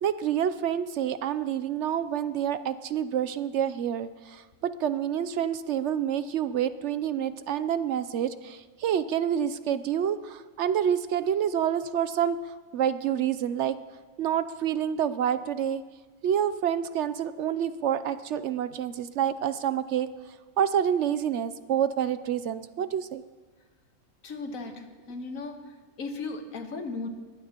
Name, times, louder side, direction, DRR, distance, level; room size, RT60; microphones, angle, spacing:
voice 1, 0.0-12.4 12.7-13.8 14.2-15.8 16.2-20.1 20.6-23.2, right 9 dB, 65° right, 13 dB, 0.8 m, -28 dB
voice 2, 24.2-25.6 26.0-27.1, left 3 dB, 80° left, 6 dB, 1.6 m, -36 dB
21.5 x 15.0 x 2.9 m, 1.3 s
omnidirectional pair, 1.4 m